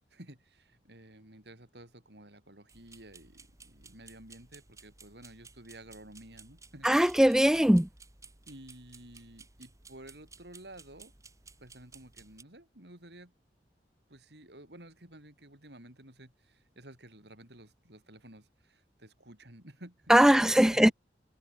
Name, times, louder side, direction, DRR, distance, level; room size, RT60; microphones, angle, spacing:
voice 1, 0.0-6.9 8.5-11.1 11.6-13.3 14.1-20.9, right 1 dB, 65° right, 6.1 m, -52 dB
sound 1, 2.7-12.4, right 4 dB, 20° right, 1.7 m, -56 dB
voice 2, 6.8-7.9 20.1-20.9, equal, 5° right, 0.3 m, -21 dB
head